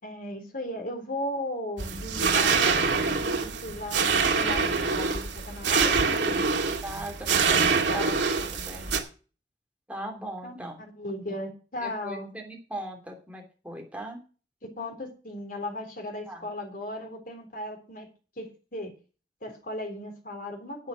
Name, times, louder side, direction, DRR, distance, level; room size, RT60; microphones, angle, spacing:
voice 1, 0.0-6.6 7.4-8.1 10.4-12.3 14.8-18.1 18.4-18.9 19.4-20.9, left 1 dB, 50° left, 4 dB, 3.5 m, -37 dB
sound 1, 1.8-9.0, right 5 dB, 90° right, 2.2 m, -25 dB
voice 2, 6.8-7.5 7.9-9.0 9.9-10.8 11.8-14.2 16.3-16.5, right 1 dB, 10° right, 2 dB, 3.0 m, -39 dB
10.5 x 8.6 x 6.3 m, 0.36 s
head